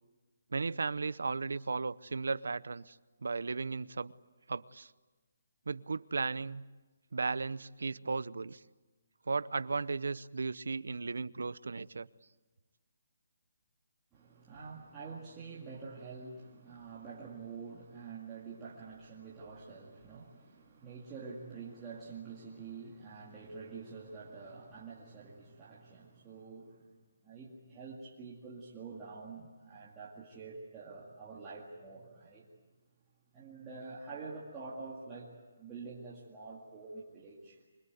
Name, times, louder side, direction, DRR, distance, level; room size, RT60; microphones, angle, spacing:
voice 1, 0.5-3.0 3.2-4.1 4.5-4.9 5.7-6.6 7.1-8.6 9.3-12.1, right 4 dB, 75° right, 18 dB, 0.8 m, -35 dB
voice 2, 14.1-27.0 27.2-32.5 33.3-37.6, right 4 dB, 10° right, -8 dB, 2.1 m, -47 dB
25.0 x 22.5 x 9.3 m, 1.2 s
hypercardioid pair, 180°, 0 cm